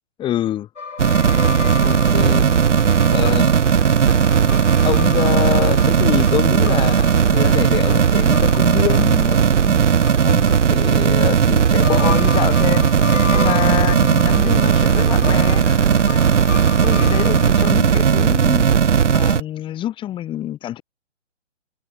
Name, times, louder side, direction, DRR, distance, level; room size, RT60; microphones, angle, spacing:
voice 1, 0.2-0.7 1.8-2.5 3.1-3.6 4.8-9.8 10.2-12.9 13.3-15.6 16.8-18.7 19.1-20.8, left 12 dB, 15° left, 1.9 m, -25 dB
sound 1, 0.8-11.5 11.8-17.8, left 5 dB, 75° left, 3.8 m, -32 dB
sound 2, 1.0-19.4, right 7 dB, 75° right, 1.1 m, -16 dB
sound 3, 5.2-18.2, right 4 dB, 90° right, 2.5 m, -37 dB
figure-of-eight pair, 140°, 37 cm